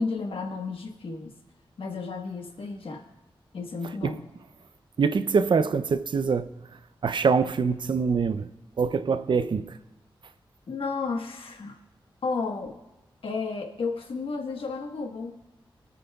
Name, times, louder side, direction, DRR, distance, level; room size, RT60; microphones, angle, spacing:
voice 1, 0.0-1.3 1.8-3.0 3.5-4.2 10.7-11.8 12.2-12.8 13.2-15.3, left 4 dB, 80° left, 1.3 m, -32 dB
voice 2, 5.0-6.5 7.0-8.5 8.8-9.8, right 5 dB, 60° right, 0.5 m, -24 dB
22.0 x 9.2 x 2.3 m
wide cardioid pair, 125°, 9 cm